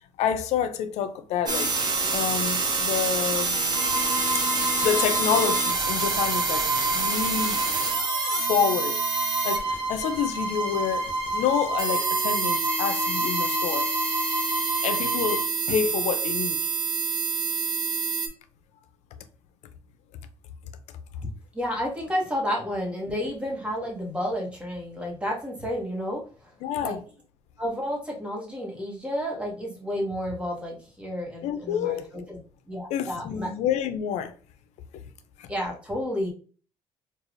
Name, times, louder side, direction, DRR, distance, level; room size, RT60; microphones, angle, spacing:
voice 1, 0.2-1.7 2.1-3.6 4.6-7.6 8.3-9.0 9.4-11.1 11.3-13.9 14.8-16.6 26.6-27.0 31.4-32.1 32.9-34.3 35.4-35.5, left 8 dB, 85° left, 0.5 m, -28 dB
sound 1, 1.5-18.3, right 4 dB, 40° right, 0.8 m, -27 dB
Bowed string instrument, 3.7-15.5, right 2 dB, 65° right, 0.9 m, -29 dB
voice 2, 21.5-26.5 26.8-27.0 27.6-32.4 32.7-33.5 35.5-36.3, equal, 10° right, 1.1 m, -31 dB
4.7 x 2.4 x 2.5 m
cardioid pair, 135°, 11 cm